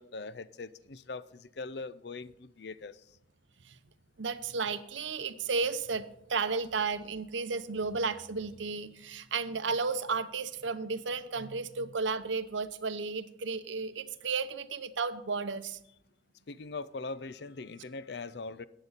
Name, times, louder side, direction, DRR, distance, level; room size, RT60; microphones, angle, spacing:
voice 1, 0.0-3.2 16.5-18.7, left 3 dB, 65° left, 0.5 m, -41 dB
voice 2, 4.2-15.8, right 4 dB, 85° right, 0.8 m, -33 dB
14.0 x 9.8 x 4.0 m
head